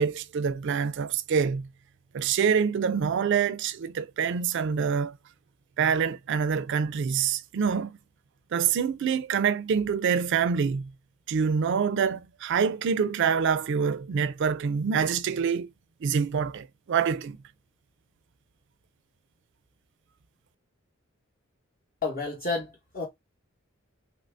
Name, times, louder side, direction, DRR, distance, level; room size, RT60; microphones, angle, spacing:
voice 1, 0.0-1.7 2.1-5.2 5.8-8.0 8.5-10.9 11.3-15.7 16.0-17.4, right 6 dB, 60° right, 0.4 m, -26 dB
voice 2, 22.0-23.0, left 3 dB, 45° left, 0.9 m, -31 dB
3.0 x 2.6 x 3.3 m
head